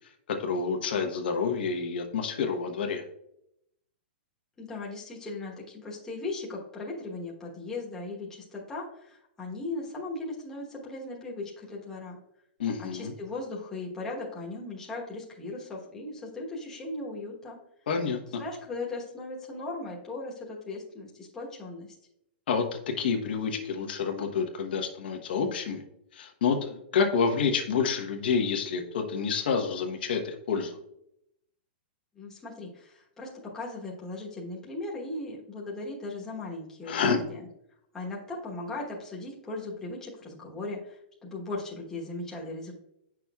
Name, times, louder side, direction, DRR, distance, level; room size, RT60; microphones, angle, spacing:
voice 1, 0.3-3.0 12.6-13.1 17.9-18.4 22.5-25.8 26.1-30.8 36.9-37.2, left 5 dB, 60° left, 4 dB, 1.0 m, -28 dB
voice 2, 4.6-12.2 12.8-17.6 18.4-22.0 32.1-37.5 37.9-42.7, left 2 dB, 10° left, -4 dB, 1.1 m, -38 dB
8.3 x 6.0 x 2.3 m, 0.77 s
hypercardioid pair, 165°, 6 cm